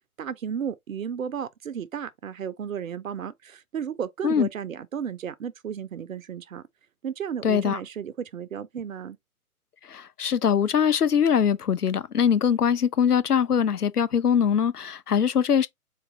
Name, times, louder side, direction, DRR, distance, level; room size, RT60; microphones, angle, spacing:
voice 1, 0.2-6.6 7.0-9.2, right 8 dB, 60° right, 0.7 m, -33 dB
voice 2, 7.4-7.8 9.9-15.7, left 7 dB, 85° left, 0.7 m, -22 dB
4.0 x 2.5 x 3.5 m
figure-of-eight pair, 130°, 45 cm